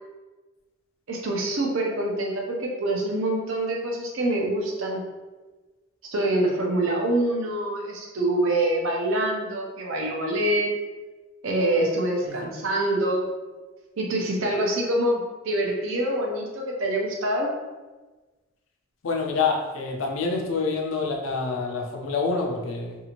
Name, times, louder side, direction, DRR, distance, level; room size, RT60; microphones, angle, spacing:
voice 1, 1.1-5.0 6.1-10.7 11.4-13.3 14.0-17.5, right 1 dB, 85° right, 0 dB, 0.6 m, -25 dB
voice 2, 19.0-23.0, left 4 dB, 85° left, 1 dB, 0.5 m, -27 dB
2.7 x 2.5 x 2.8 m, 1.2 s
head